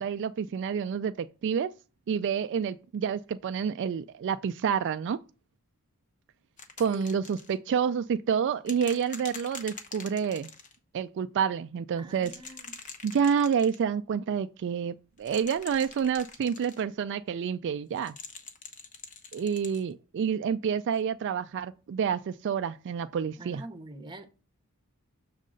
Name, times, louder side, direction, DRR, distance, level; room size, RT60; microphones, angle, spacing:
voice 1, 0.0-1.7 2.1-5.2 6.8-10.5 10.9-12.3 13.0-18.2 19.3-23.6, right 7 dB, 55° right, 0.3 m, -29 dB
sound 1, 6.6-7.5 8.7-10.8 12.2-13.8 15.2-16.8 18.0-19.8 21.0-21.1, left 5 dB, 35° left, 0.9 m, -45 dB
voice 2, 12.0-12.7 23.4-24.3, right 2 dB, 20° right, 0.9 m, -44 dB
6.4 x 3.8 x 6.3 m
head